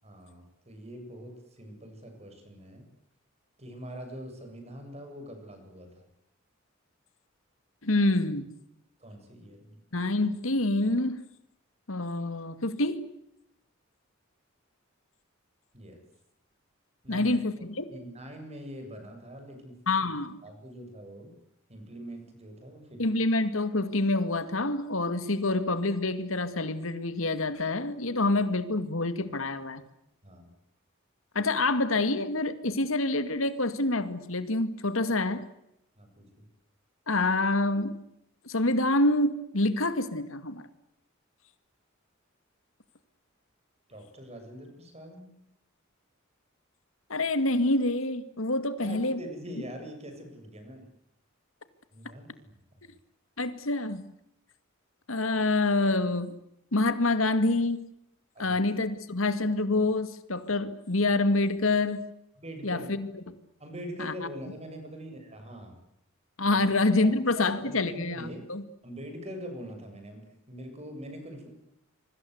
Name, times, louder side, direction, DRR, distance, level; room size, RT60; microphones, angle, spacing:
voice 1, 0.0-2.9 3.6-6.0 9.0-9.8 15.7-16.0 17.0-17.3 17.9-20.1 20.4-21.3 21.7-23.0 30.2-30.5 36.0-36.5 43.9-45.3 48.8-50.9 51.9-52.5 52.8-52.9 58.3-58.6 62.4-62.9 63.6-65.8 66.4-66.6 67.0-68.4 68.8-71.5, equal, 30° right, 7.5 m, -43 dB
voice 2, 7.8-8.5 9.9-11.2 11.9-13.0 17.1-17.8 19.9-20.4 23.0-29.8 31.3-35.4 37.1-38.0 38.4-40.7 47.1-49.2 53.4-54.0 55.1-56.3 56.7-57.9 58.4-62.0 62.6-63.1 64.0-64.1 66.4-68.6, left 2 dB, 80° left, 2.3 m, -27 dB
26.5 x 24.0 x 8.1 m
head